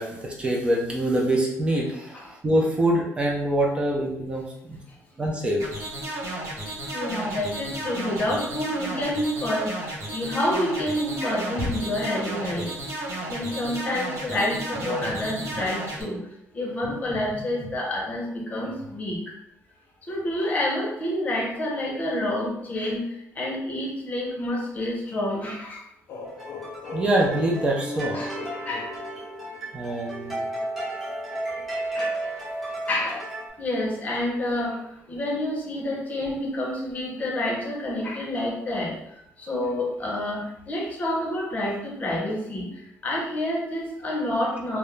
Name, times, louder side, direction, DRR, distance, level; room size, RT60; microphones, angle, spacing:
voice 1, 0.0-4.8 5.2-5.6 26.9-28.2 29.7-30.5, right 1 dB, 20° right, -1 dB, 0.4 m, -25 dB
sound 1, 5.6-16.0, right 1 dB, 55° right, 0.9 m, -33 dB
voice 2, 6.8-12.8 13.3-16.2 16.5-19.2 20.1-23.0 23.4-25.8 28.1-28.9 31.9-32.1 32.9-33.2 33.6-34.8 35.1-38.9 39.4-42.7 43.0-44.8, left 1 dB, 25° left, -3 dB, 0.7 m, -28 dB
sound 2, 26.1-29.8, left 4 dB, 60° left, 0.4 m, -39 dB
sound 3, 26.2-33.5, right 1 dB, ahead, 0.8 m, -33 dB
2.3 x 2.0 x 3.0 m, 0.78 s
cardioid pair, 155°, 6 cm